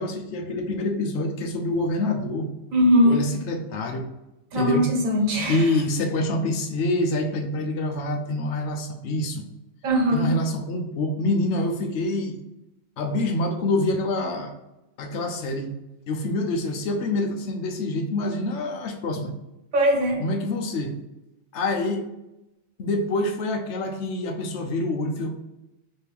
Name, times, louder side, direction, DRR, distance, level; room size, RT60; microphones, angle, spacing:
voice 1, 0.0-2.5 3.0-4.1 4.5-4.9 5.5-9.5 10.1-12.4 13.0-14.5 15.0-15.7 16.1-19.3 20.2-21.0 21.5-22.0 22.8-25.4, left 2 dB, 65° left, 3 dB, 0.9 m, -26 dB
voice 2, 2.7-3.2 4.5-5.8 9.8-10.3 19.7-20.2, equal, 90° right, 0 dB, 1.4 m, -20 dB
3.5 x 3.3 x 4.5 m, 0.94 s
omnidirectional pair, 1.4 m